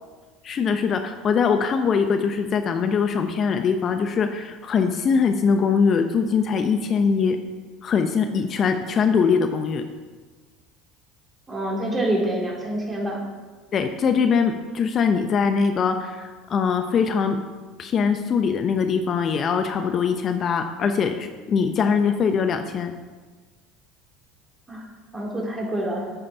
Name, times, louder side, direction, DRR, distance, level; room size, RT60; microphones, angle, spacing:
voice 1, 0.4-7.4 7.8-9.8 13.7-17.4 17.8-22.9, left 6 dB, 40° left, 7 dB, 0.9 m, -22 dB
voice 2, 11.5-13.2 24.7-24.8 25.1-26.1, right 1 dB, 20° right, -3 dB, 4.0 m, -26 dB
9.5 x 8.7 x 5.5 m, 1.4 s
hypercardioid pair, 75°, 0 cm